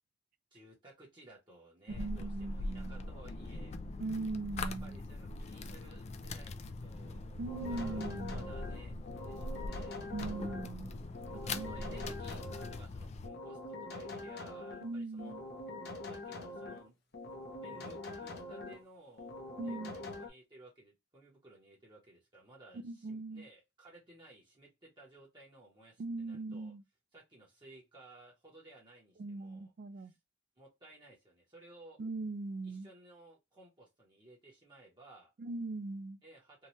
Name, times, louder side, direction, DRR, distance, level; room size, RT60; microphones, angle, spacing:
voice 1, 0.5-3.7 4.6-10.0 11.4-12.4 12.7-15.3 16.1-17.0 17.6-19.3 19.6-26.7 27.1-29.7 30.0-30.2 30.6-32.0 32.6-35.3 36.2-36.7, right 2 dB, 25° right, 0.9 m, -57 dB
sound 1, 1.9-13.3, left 2 dB, 35° left, 0.3 m, -42 dB
voice 2, 1.9-3.1 4.0-5.0 7.4-8.5 10.1-10.9 11.5-12.1 14.8-15.4 19.6-19.9 22.8-23.5 26.0-26.8 29.2-30.1 32.0-32.9 35.4-36.2, right 3 dB, 45° right, 0.3 m, -40 dB
sound 2, 7.5-10.7 11.1-12.8 13.2-14.9 15.2-16.9 17.1-18.8 19.2-20.3, left 2 dB, 60° left, 0.7 m, -44 dB
2.7 x 2.3 x 3.0 m
head